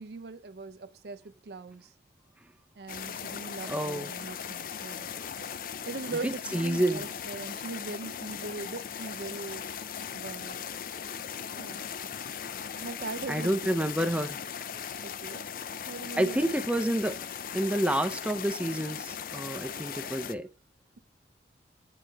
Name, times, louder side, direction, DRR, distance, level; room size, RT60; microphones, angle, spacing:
voice 1, 0.0-1.9 2.8-5.1 5.9-9.7 10.1-10.6 11.6-11.9 12.8-13.9 15.0-15.5 15.9-16.7, right 3 dB, 65° right, 0.5 m, -40 dB
sound 1, 2.9-20.3, left 7 dB, 50° left, 0.4 m, -38 dB
voice 2, 3.6-4.1 6.1-7.1 13.3-14.4 16.2-17.2 17.5-20.5, right 1 dB, 5° right, 0.5 m, -29 dB
8.8 x 4.6 x 3.3 m
head